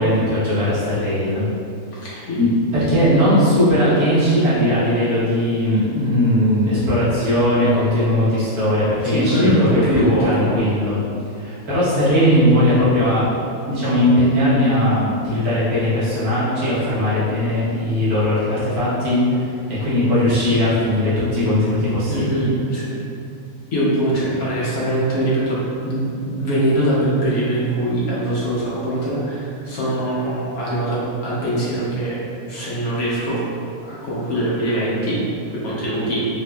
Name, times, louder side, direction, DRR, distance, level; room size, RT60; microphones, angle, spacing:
voice 1, 0.0-1.5 2.1-11.0 11.4-13.3 13.7-22.5, left 1 dB, 75° right, -10 dB, 1.6 m, -18 dB
voice 2, 1.9-2.4 9.0-10.5 22.1-23.1 23.7-32.2 32.5-33.4 33.8-36.3, right 1 dB, 70° left, -7 dB, 1.3 m, -22 dB
4.0 x 2.7 x 2.2 m, 2.5 s
omnidirectional pair, 1.6 m